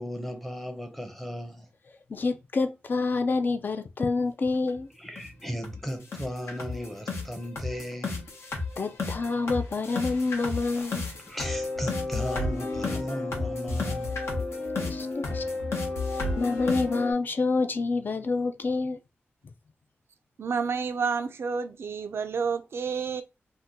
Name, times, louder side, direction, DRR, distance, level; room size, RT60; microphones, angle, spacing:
voice 1, 0.0-1.7 4.9-8.3 10.8-10.9 11.2-14.2, equal, 5° left, 0.6 m, -36 dB
voice 2, 2.1-4.9 8.8-11.0 14.8-15.4 16.1-19.0, left 3 dB, 45° left, 0.3 m, -27 dB
sound 1, 4.7-4.8 5.2-5.3 5.6-5.8 6.1-17.1, left 3 dB, 85° left, 0.9 m, -32 dB
voice 3, 20.4-23.2, right 5 dB, 70° right, 0.3 m, -29 dB
2.7 x 2.2 x 3.5 m
wide cardioid pair, 145°, 4 cm